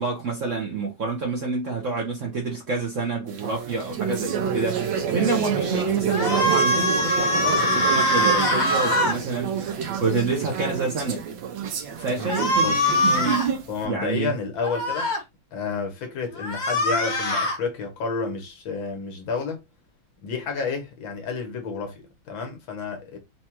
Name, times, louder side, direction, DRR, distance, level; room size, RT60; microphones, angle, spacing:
voice 1, 0.0-11.2 11.9-14.3, right 4 dB, 55° right, 0.9 m, -28 dB
sound 1, 3.3-13.8, right 7 dB, 75° right, 1.5 m, -29 dB
sound 2, 6.1-9.2 12.3-13.5 14.6-15.2 16.4-17.6, equal, 60° left, 0.4 m, -22 dB
voice 2, 12.2-12.9 13.7-15.1 15.5-19.6 20.2-23.2, left 4 dB, 80° left, 1.8 m, -30 dB
4.3 x 2.3 x 2.8 m
omnidirectional pair, 2.1 m